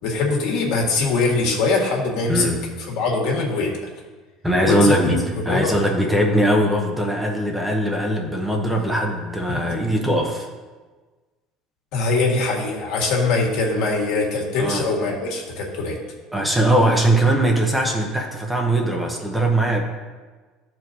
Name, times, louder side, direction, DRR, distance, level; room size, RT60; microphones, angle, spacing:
voice 1, 0.0-2.5 2.9-3.7 4.6-5.8 9.5-9.8 11.9-16.0, left 3 dB, 65° left, -1 dB, 1.7 m, -22 dB
voice 2, 2.3-2.6 4.4-10.5 14.6-14.8 16.3-19.8, right 1 dB, 5° right, 1 dB, 0.6 m, -20 dB
13.0 x 4.5 x 2.7 m, 1.3 s
cardioid pair, 150°, 0 cm